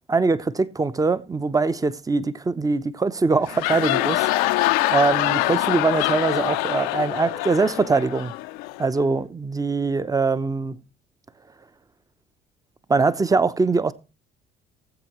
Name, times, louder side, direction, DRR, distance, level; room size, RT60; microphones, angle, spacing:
voice 1, 0.1-8.3 8.8-10.8 12.9-13.9, right 4 dB, 15° right, 0.7 m, -22 dB
sound 1, 3.3-8.9, left 17 dB, 75° left, 0.6 m, -24 dB
18.5 x 7.7 x 3.1 m
hypercardioid pair, 60°, 21 cm